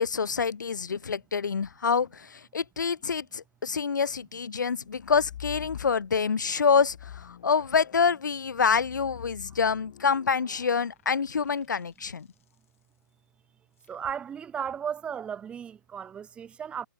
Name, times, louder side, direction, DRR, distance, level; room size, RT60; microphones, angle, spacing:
voice 1, 0.0-12.3, left 6 dB, 60° left, 1.3 m, -26 dB
sound 1, 4.9-6.3 6.8-12.3 13.8-14.2, left 10 dB, 40° left, 7.0 m, -46 dB
voice 2, 13.9-16.9, right 8 dB, 10° right, 1.8 m, -35 dB
figure-of-eight pair, 135°, 11 cm